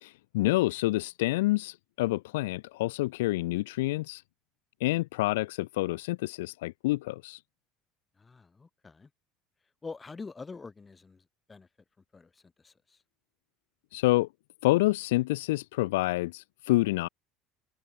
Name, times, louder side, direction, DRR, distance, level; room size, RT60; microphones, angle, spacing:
voice 1, 0.0-4.2 4.8-7.4 13.9-14.3 14.6-17.1, left 19 dB, 85° left, 0.5 m, -28 dB
voice 2, 8.2-9.1 9.8-11.2 11.5-11.7 12.1-12.3 12.6-12.7, left 4 dB, 20° left, 4.6 m, -44 dB
supercardioid pair, 95°, 0 cm